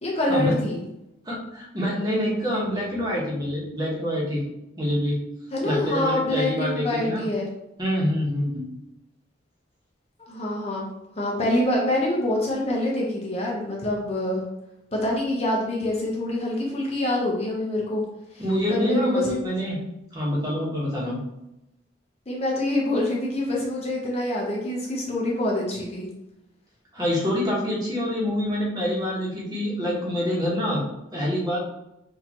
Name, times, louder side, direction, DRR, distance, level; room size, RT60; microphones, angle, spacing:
voice 1, 0.0-0.8 5.5-7.5 10.3-10.9 11.2-14.4 14.9-18.0 18.3-18.4 18.7-19.4 22.3-26.1, left 1 dB, 30° left, -3 dB, 0.8 m, -25 dB
voice 2, 1.2-4.4 4.8-5.2 5.6-7.3 7.8-8.6 18.4-19.8 20.1-21.2 26.9-30.8 31.1-31.6, equal, 20° right, -5 dB, 1.3 m, -26 dB
6.3 x 2.7 x 3.0 m, 0.89 s
head